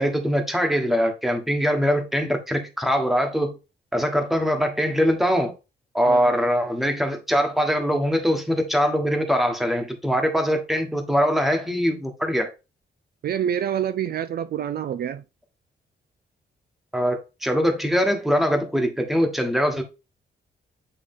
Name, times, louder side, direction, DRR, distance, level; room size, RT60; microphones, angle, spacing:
voice 1, 0.0-3.6 3.9-5.5 5.9-12.5 16.9-19.8, equal, ahead, 1.3 m, -22 dB
voice 2, 6.1-6.4 13.2-15.2, right 9 dB, 60° right, 0.4 m, -27 dB
8.6 x 3.3 x 3.7 m
wide cardioid pair, 135°, 18 cm